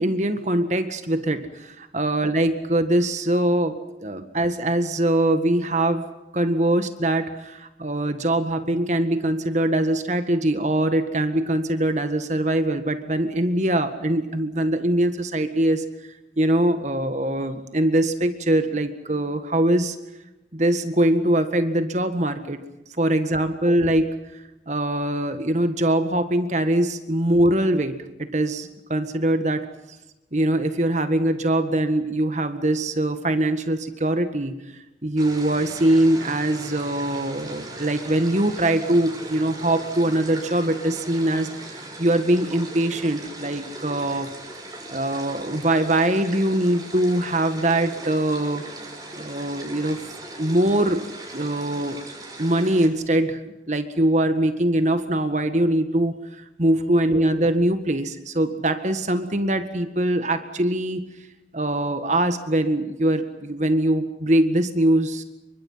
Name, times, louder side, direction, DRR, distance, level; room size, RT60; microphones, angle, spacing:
voice 1, 0.0-6.1 6.3-15.8 16.4-20.0 20.5-22.6 23.0-29.6 30.3-34.6 35.0-44.3 44.9-48.6 49.2-50.0 50.4-51.0 51.3-52.0 52.4-53.4 53.7-61.0 61.5-65.2, right 1 dB, 40° right, 9 dB, 1.8 m, -22 dB
sound 1, 35.2-52.9, right 2 dB, 20° right, 7.0 m, -39 dB
29.0 x 25.0 x 5.8 m, 0.95 s
head